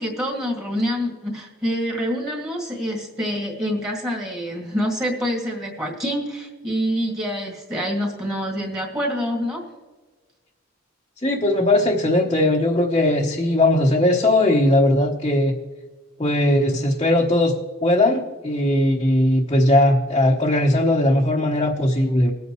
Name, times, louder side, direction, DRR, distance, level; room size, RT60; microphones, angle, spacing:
voice 1, 0.0-9.7, equal, 15° right, -2 dB, 1.9 m, -26 dB
voice 2, 11.2-15.6 16.2-17.5 17.8-22.3, left 1 dB, 25° left, -2 dB, 0.9 m, -19 dB
20.5 x 8.5 x 3.1 m, 1.3 s
head